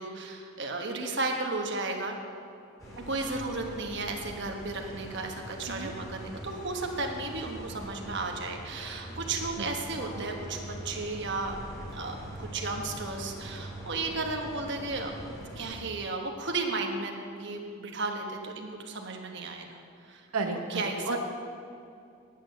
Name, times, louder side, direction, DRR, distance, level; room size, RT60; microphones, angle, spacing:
voice 1, 0.0-2.2 3.0-21.2, right 3 dB, 55° right, 2 dB, 1.2 m, -34 dB
sound 1, 2.8-15.8, equal, 15° left, 3.1 m, -43 dB
voice 2, 20.3-21.2, right 3 dB, 90° right, 3 dB, 0.8 m, -33 dB
9.9 x 8.6 x 6.7 m, 2.5 s
head